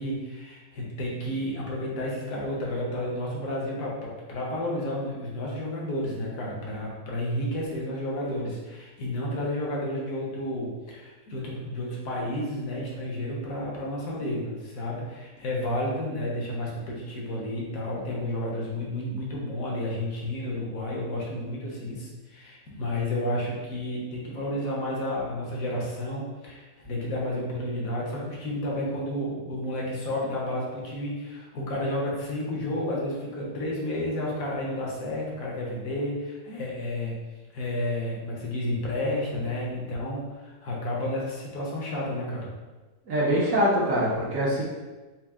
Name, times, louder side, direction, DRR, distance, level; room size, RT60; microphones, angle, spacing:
voice 1, 0.0-37.2 37.5-42.5, left 1 dB, 65° left, -3 dB, 1.3 m, -31 dB
voice 2, 43.1-44.6, equal, 65° right, -4 dB, 1.1 m, -23 dB
4.4 x 2.0 x 3.5 m, 1.2 s
omnidirectional pair, 1.6 m